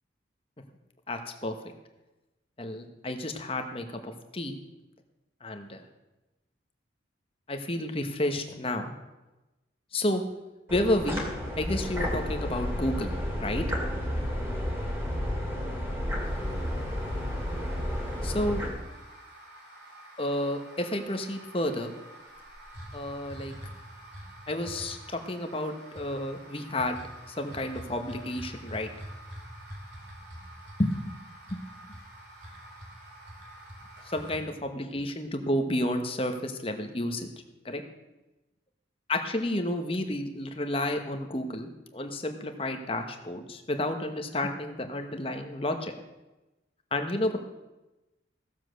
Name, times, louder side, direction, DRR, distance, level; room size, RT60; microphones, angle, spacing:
voice 1, 1.1-1.6 2.6-4.6 5.4-5.8 7.5-8.9 9.9-10.2 10.7-11.2 11.6-13.1 13.4-13.6 18.2-18.6 20.2-21.9 22.9-23.5 24.5-27.0 27.4-28.9 30.8-31.1 31.5-31.6 34.1-37.3 37.6-37.8 39.1-45.9 46.9-47.4, left 1 dB, 30° left, 6 dB, 1.1 m, -31 dB
sound 1, 10.7-18.7, equal, 15° right, 2.5 m, -31 dB
sound 2, 16.2-34.4, right 1 dB, 65° right, 3.2 m, -46 dB
15.5 x 7.4 x 6.3 m, 1.0 s
head